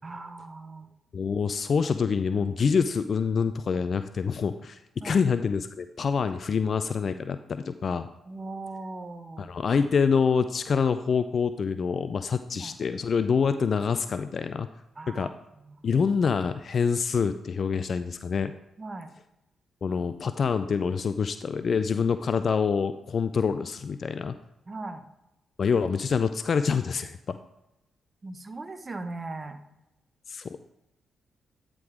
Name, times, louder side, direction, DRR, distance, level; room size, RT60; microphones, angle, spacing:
voice 1, 0.0-0.9 5.0-5.2 8.3-9.5 12.5-12.7 15.0-15.8 18.8-19.1 24.7-25.0 28.2-29.6, right 2 dB, 35° right, 9 dB, 0.8 m, -39 dB
voice 2, 1.1-8.1 9.4-14.7 15.1-15.3 15.8-18.5 19.8-24.3 25.6-27.4 30.3-30.7, left 6 dB, 55° left, 11 dB, 0.3 m, -26 dB
9.6 x 3.7 x 4.9 m, 0.90 s
hypercardioid pair, 40°, 0 cm